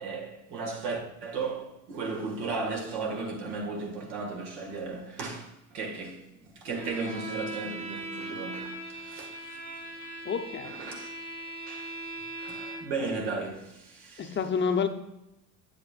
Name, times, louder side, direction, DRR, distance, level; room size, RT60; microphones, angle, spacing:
voice 1, 0.0-9.6 10.6-11.1 11.7-12.0 12.4-14.4, right 4 dB, 70° right, 1.9 m, -35 dB
Bowed string instrument, 6.7-13.0, right 2 dB, 85° right, 2.7 m, -39 dB
voice 2, 10.2-10.7 14.2-14.9, left 6 dB, 30° left, 0.8 m, -28 dB
8.8 x 7.3 x 2.5 m
hypercardioid pair, 75°, 40 cm